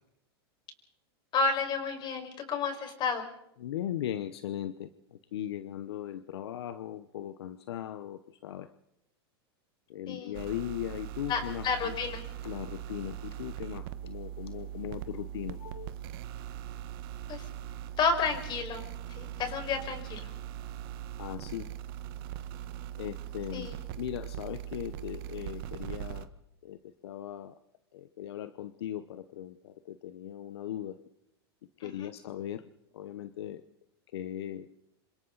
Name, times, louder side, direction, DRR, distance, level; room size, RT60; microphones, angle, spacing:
voice 1, 1.3-3.2 10.1-10.4 11.3-12.2 17.3-17.5 18.0-18.9 19.1-20.3 23.5-23.8 31.8-32.1, left 4 dB, 35° left, 5 dB, 5.1 m, -31 dB
voice 2, 3.6-8.7 9.9-11.9 12.4-15.9 21.2-21.7 23.0-23.7 24.0-26.3 26.6-27.5 27.9-31.0 31.8-32.6 32.9-33.6 34.1-34.7, left 11 dB, 80° left, 12 dB, 0.9 m, -38 dB
sound 1, 10.3-26.3, right 11 dB, 60° right, 1.2 m, -41 dB
28.0 x 26.5 x 4.0 m, 0.81 s
hypercardioid pair, 120°, 13 cm